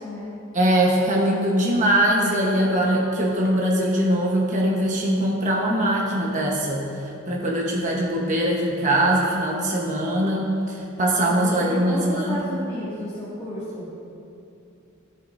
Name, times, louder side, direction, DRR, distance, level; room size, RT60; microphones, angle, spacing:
voice 1, 0.0-0.4 11.3-13.9, equal, 20° left, -11 dB, 2.2 m, -32 dB
voice 2, 0.5-12.4, right 1 dB, 40° right, -3 dB, 1.1 m, -22 dB
16.5 x 7.3 x 2.6 m, 2.7 s
head